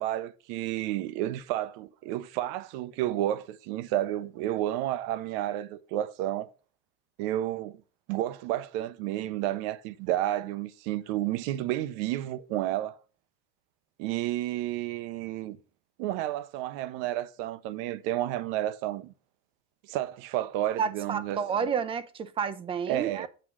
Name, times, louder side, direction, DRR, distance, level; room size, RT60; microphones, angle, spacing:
voice 1, 0.0-6.5 7.2-7.8 8.1-13.0 14.0-15.6 16.0-19.1 19.9-21.4 22.9-23.3, right 13 dB, 65° right, 0.7 m, -31 dB
voice 2, 20.8-23.3, right 6 dB, 20° right, 0.4 m, -30 dB
7.8 x 3.6 x 6.1 m
cardioid pair, 160°, 30 cm